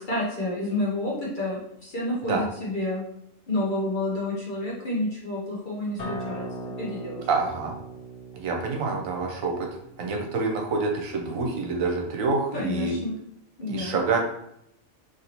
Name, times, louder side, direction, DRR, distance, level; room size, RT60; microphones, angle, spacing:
voice 1, 0.1-3.0 3.5-7.2 12.5-13.1 13.6-14.0, left 1 dB, 40° left, -6 dB, 0.9 m, -29 dB
Acoustic guitar, 6.0-11.2, right 2 dB, 85° left, 0.3 m, -39 dB
voice 2, 7.3-7.7 8.3-9.7 10.0-12.9 13.7-14.2, right 4 dB, 75° right, 1 dB, 1.0 m, -27 dB
2.9 x 2.7 x 2.9 m, 0.76 s
omnidirectional pair, 1.4 m